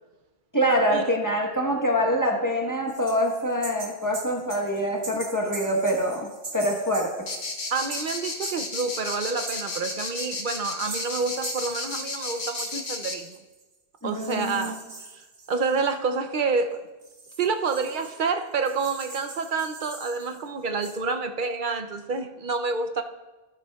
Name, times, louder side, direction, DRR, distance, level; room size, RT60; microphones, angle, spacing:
voice 1, 0.5-6.3 6.5-7.1 14.0-14.8, equal, 20° left, 0 dB, 1.1 m, -25 dB
sound 1, 2.9-13.6 14.1-16.0 16.7-16.8 17.0-20.4 20.8-21.0, right 3 dB, 85° right, 1.3 m, -42 dB
sound 2, 7.3-13.2, left 3 dB, 65° left, 1.2 m, -32 dB
voice 2, 7.7-13.4 14.0-14.8 15.1-15.2 15.5-16.9 17.4-23.0, right 4 dB, 60° right, 7 dB, 0.7 m, -28 dB
11.5 x 9.4 x 2.3 m, 1.2 s
omnidirectional pair, 1.0 m